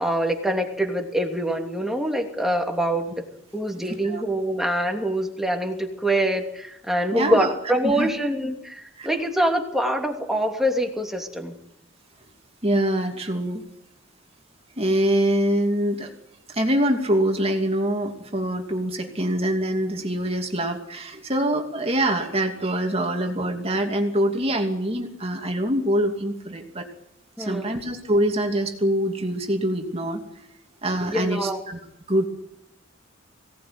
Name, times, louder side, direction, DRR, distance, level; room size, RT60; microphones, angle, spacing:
voice 1, 0.0-3.1 3.5-11.5 27.4-27.7 31.1-31.6, right 1 dB, ahead, 2 dB, 2.9 m, -25 dB
voice 2, 7.1-7.5 7.8-8.1 9.0-9.1 12.6-13.6 14.8-16.1 16.5-26.9 27.4-30.2 30.8-31.8 32.1-32.3, right 1 dB, 30° right, 4 dB, 2.7 m, -24 dB
23.0 x 18.5 x 9.6 m, 0.81 s
head